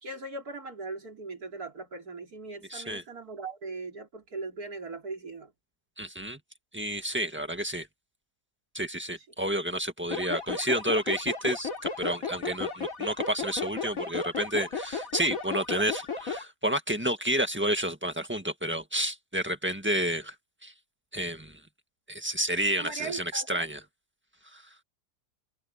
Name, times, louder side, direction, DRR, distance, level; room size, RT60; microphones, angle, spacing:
voice 1, 0.0-5.5 22.8-23.7, right 3 dB, 70° right, 4.3 m, -39 dB
voice 2, 2.7-3.0 6.0-6.4 6.7-7.9 8.7-20.3 20.6-20.7 21.1-21.6 22.1-23.8 24.5-24.6, right 1 dB, 5° right, 1.6 m, -30 dB
sound 1, 10.1-16.4, left 5 dB, 60° left, 3.2 m, -34 dB
omnidirectional pair, 1.6 m